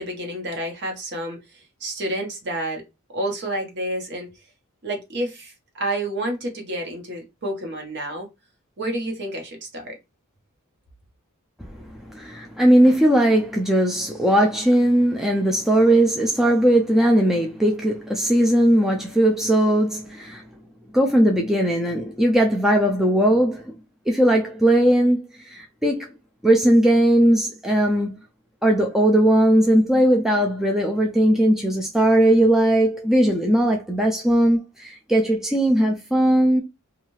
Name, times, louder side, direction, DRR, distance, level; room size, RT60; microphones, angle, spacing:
voice 1, 0.0-2.8 3.1-4.3 4.8-8.3 8.8-10.0, right 1 dB, 50° right, 1.0 m, -29 dB
voice 2, 11.6-20.4 20.9-23.7 24.1-26.1 26.4-28.2 28.6-36.6, right 1 dB, ahead, 0.3 m, -19 dB
2.7 x 2.4 x 3.0 m
head